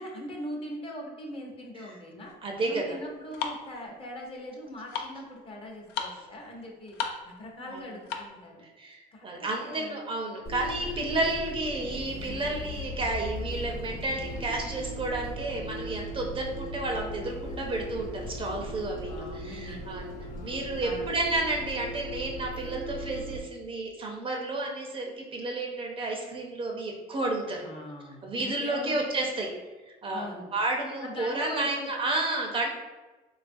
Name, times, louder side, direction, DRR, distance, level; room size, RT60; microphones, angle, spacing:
voice 1, 0.0-2.3 2.6-7.0 7.2-8.6 9.1-9.2 9.6-10.0 18.8-19.8 20.3-21.1 27.6-29.1 30.1-30.5 31.0-31.9, left 1 dB, 35° left, 0 dB, 0.7 m, -41 dB
sound 1, 2.2-8.5, left 6 dB, 85° left, 0.4 m, -38 dB
voice 2, 2.4-3.0 7.7-7.8 8.8-20.2 20.4-27.6 28.2-29.5 29.9-32.7, right 2 dB, 30° right, 0 dB, 0.5 m, -31 dB
Bus, 10.4-23.4, equal, 65° left, 0.9 m, -38 dB
3.4 x 2.3 x 2.5 m, 1.2 s
cardioid pair, 110°, 17 cm